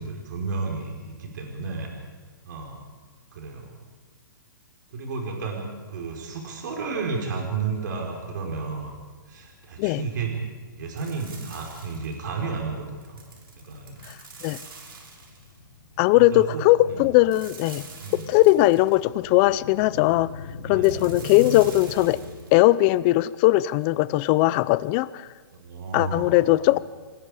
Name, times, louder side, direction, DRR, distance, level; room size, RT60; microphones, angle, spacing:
voice 1, 0.0-1.9 2.5-2.9 3.3-3.7 4.9-9.0 9.3-13.2 13.7-14.0 16.1-17.1 17.8-18.2 20.6-21.1 25.6-26.3 26.6-26.7, right 4 dB, 60° right, 1 dB, 4.4 m, -32 dB
sound 1, 6.7-22.4, left 5 dB, 60° left, 6.9 m, -43 dB
sound 2, 11.0-12.3 13.0-15.6 17.3-19.0 20.8-22.5, right 4 dB, 85° right, 5.6 m, -45 dB
voice 2, 16.0-17.8 18.1-20.3 20.6-22.2 22.5-25.3 25.9-26.8, left 17 dB, 25° left, 19 dB, 0.5 m, -19 dB
28.0 x 19.5 x 5.0 m, 1.5 s
hypercardioid pair, 155°, 11 cm